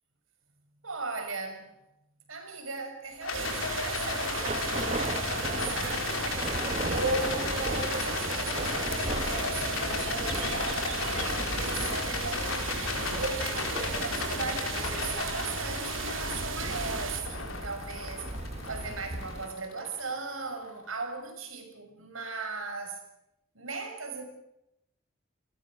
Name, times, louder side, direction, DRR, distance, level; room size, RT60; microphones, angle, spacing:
voice 1, 0.8-1.7 2.3-6.1 6.9-12.5 13.2-18.3 18.7-23.0 23.5-24.2, right 3 dB, 85° right, 5 dB, 6.3 m, -37 dB
Rattle, 3.2-20.6, left 4 dB, 85° left, 4.4 m, -35 dB
Thunder / Rain, 3.3-19.6, right 2 dB, 30° right, 1.0 m, -38 dB
sound 1, 3.3-17.2, right 5 dB, 70° right, 3.5 m, -36 dB
30.0 x 20.5 x 6.4 m, 0.86 s
head